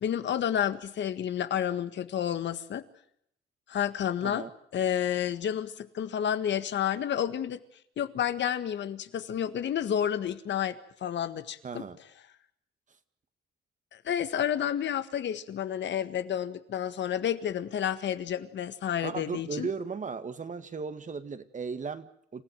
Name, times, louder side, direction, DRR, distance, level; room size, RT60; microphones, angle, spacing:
voice 1, 0.0-2.8 3.7-4.5 4.7-7.6 8.0-11.8 13.9-19.7, left 9 dB, 65° left, 11 dB, 1.7 m, -30 dB
voice 2, 11.6-12.0 19.0-22.4, right 5 dB, 40° right, 10 dB, 1.9 m, -36 dB
27.5 x 15.0 x 9.2 m, 0.71 s
cardioid pair, 90°, 20 cm